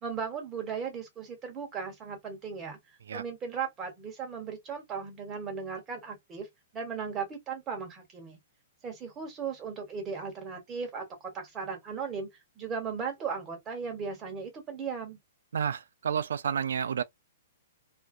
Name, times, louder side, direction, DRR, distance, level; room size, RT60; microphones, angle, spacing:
voice 1, 0.0-2.8 3.1-6.5 6.7-8.4 8.8-12.3 12.6-15.2, right 6 dB, 20° right, 1.1 m, -37 dB
voice 2, 15.5-17.0, right 7 dB, 80° right, 0.3 m, -30 dB
2.6 x 2.1 x 2.4 m
hypercardioid pair, 145°, 0 cm